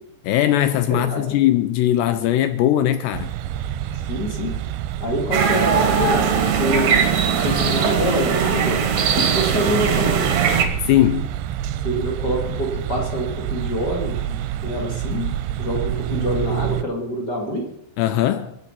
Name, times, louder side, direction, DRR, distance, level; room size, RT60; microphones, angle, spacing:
voice 1, 0.2-3.3 10.8-11.3 18.0-18.6, left 12 dB, 80° left, 2.6 m, -19 dB
voice 2, 1.0-1.4 4.1-4.5 5.0-6.9 7.4-8.8 9.1-10.2 11.8-15.3 15.6-17.6, equal, 30° left, 2.1 m, -26 dB
sound 1, 3.1-16.9, right 11 dB, 80° right, 2.8 m, -28 dB
sound 2, 5.3-10.6, right 6 dB, 60° right, 2.1 m, -20 dB
22.5 x 9.1 x 5.7 m
omnidirectional pair, 5.4 m